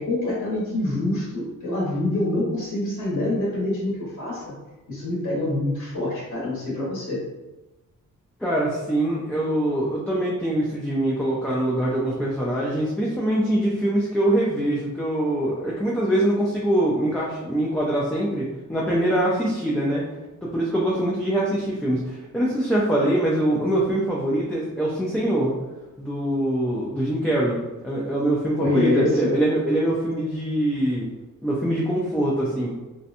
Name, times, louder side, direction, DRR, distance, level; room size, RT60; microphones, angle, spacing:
voice 1, 0.0-4.5 4.9-7.2 28.5-29.4, left 2 dB, 55° left, -7 dB, 1.1 m, -25 dB
voice 2, 8.4-20.0 20.4-25.5 26.0-27.6 27.8-31.1 31.4-32.8, right 1 dB, 5° left, -5 dB, 0.4 m, -23 dB
2.8 x 2.2 x 2.5 m, 1.1 s
wide cardioid pair, 100°, 33 cm